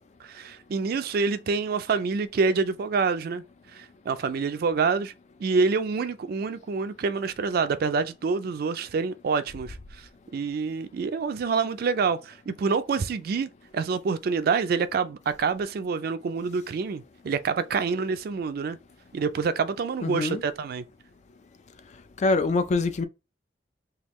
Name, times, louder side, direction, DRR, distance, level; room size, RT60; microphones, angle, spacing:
voice 1, 0.2-3.4 3.7-5.1 5.4-10.0 10.3-18.8 19.1-20.8, right 5 dB, 55° right, 0.3 m, -27 dB
voice 2, 20.0-20.4 22.2-23.1, left 3 dB, 40° left, 0.3 m, -24 dB
3.4 x 2.4 x 3.0 m
head